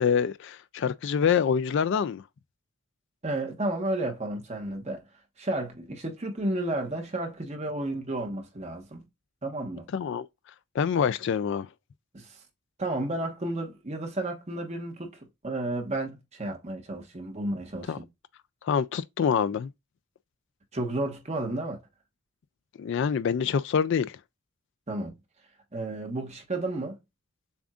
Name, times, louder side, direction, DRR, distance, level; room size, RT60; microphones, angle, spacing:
voice 1, 0.0-2.2 9.9-10.3 10.7-11.7 17.9-18.0 18.6-19.7 22.8-24.2, left 7 dB, 55° left, 0.3 m, -26 dB
voice 2, 3.2-5.0 5.4-9.0 9.4-9.9 12.1-12.4 12.8-17.9 20.7-21.8 24.9-25.1 25.7-27.0, right 1 dB, 30° right, 1.2 m, -32 dB
7.0 x 2.5 x 2.3 m
head